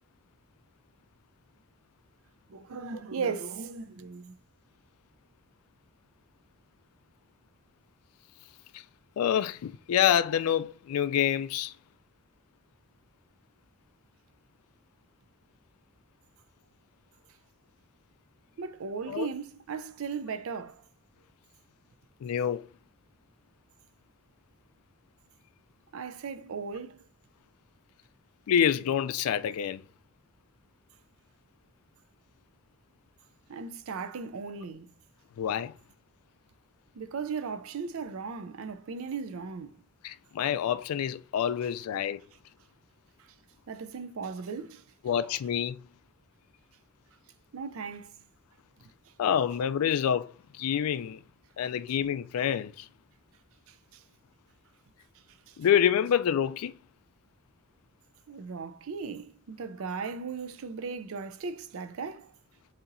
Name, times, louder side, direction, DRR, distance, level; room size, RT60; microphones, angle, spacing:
voice 1, 2.5-4.3 18.6-20.8 25.9-27.0 33.5-34.9 36.9-39.7 43.3-43.4 43.7-44.8 47.5-48.2 53.7-54.0 55.5-55.6 58.3-62.3, right 5 dB, 65° right, 0.4 m, -37 dB
voice 2, 9.2-11.7 19.1-19.3 22.2-22.7 28.5-29.8 35.4-35.7 40.0-42.2 45.0-45.8 49.2-51.2 51.6-52.9 55.6-56.7, left 9 dB, 75° left, 0.3 m, -27 dB
6.8 x 2.8 x 2.5 m
head